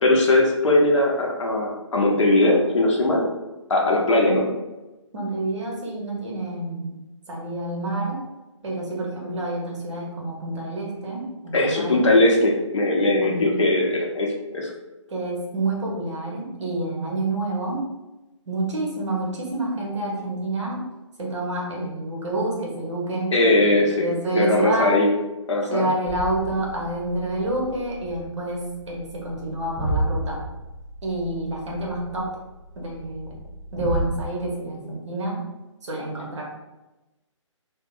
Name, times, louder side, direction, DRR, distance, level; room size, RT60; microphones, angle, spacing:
voice 1, 0.0-3.3 3.7-4.5 11.5-14.7 23.3-24.1 24.3-25.1 25.5-25.9, left 2 dB, 65° left, 0 dB, 0.6 m, -20 dB
voice 2, 4.1-4.5 5.1-6.9 7.3-8.2 8.6-12.0 13.2-13.5 15.1-17.9 18.5-20.9 21.2-25.0 25.7-30.4 31.0-32.4 32.8-33.3 33.7-35.4 35.8-36.4, right 2 dB, 65° right, -2 dB, 0.9 m, -28 dB
sound 1, 26.1-34.2, right 1 dB, 40° right, 1.0 m, -32 dB
2.7 x 2.0 x 2.4 m, 1.0 s
figure-of-eight pair, 145°, 17 cm